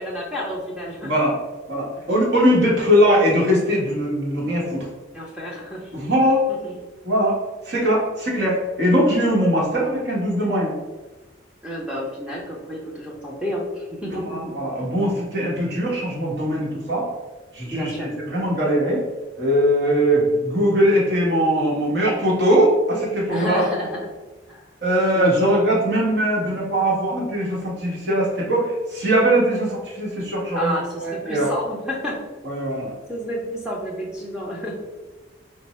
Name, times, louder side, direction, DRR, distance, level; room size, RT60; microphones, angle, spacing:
voice 1, 0.0-1.1 5.1-5.9 6.6-6.7 11.6-14.6 15.6-15.7 17.7-18.1 23.3-24.0 24.5-24.6 25.1-25.7 30.5-32.2 33.1-34.8, equal, 5° right, -4 dB, 0.5 m, -30 dB
voice 2, 1.0-1.3 1.7-4.9 5.9-6.4 7.0-7.4 7.6-10.8 14.3-17.1 17.5-19.0 19.4-23.7 24.8-30.7 31.0-31.5 32.4-32.9, equal, 65° right, -4 dB, 1.2 m, -20 dB
4.2 x 2.0 x 4.2 m, 1.2 s
head